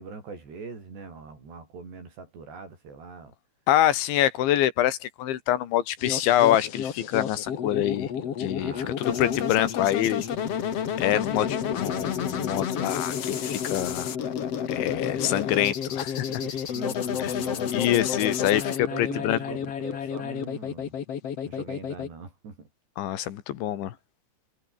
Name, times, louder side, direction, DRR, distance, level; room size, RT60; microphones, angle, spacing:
voice 1, 0.0-3.3 8.5-9.4 16.2-17.7 18.9-20.9 21.4-22.7, right 4 dB, 65° right, 9.7 m, -42 dB
voice 2, 3.7-8.1 8.4-10.3 11.0-14.1 14.7-16.3 17.2-19.4 23.0-23.9, left 12 dB, 85° left, 4.2 m, -25 dB
sound 1, 6.0-22.1, left 8 dB, 45° left, 2.2 m, -30 dB
omnidirectional pair, 5.2 m